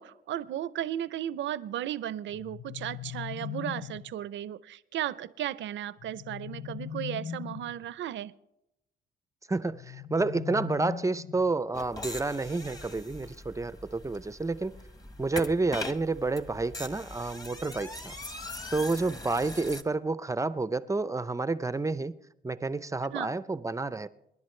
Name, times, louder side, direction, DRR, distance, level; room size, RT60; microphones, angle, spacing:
voice 1, 0.0-8.3 23.1-23.3, right 11 dB, 70° right, 16 dB, 0.6 m, -35 dB
sound 1, 2.3-4.1 6.0-7.9 9.7-11.6, left 9 dB, 40° left, 0.6 m, -40 dB
voice 2, 9.5-14.8 15.2-18.1 18.7-22.2 22.4-24.1, right 3 dB, 15° right, 14 dB, 0.5 m, -30 dB
sound 2, 11.7-19.8, left 2 dB, 20° left, 1.2 m, -41 dB
27.5 x 11.0 x 3.2 m, 0.86 s
cardioid pair, 90°, 20 cm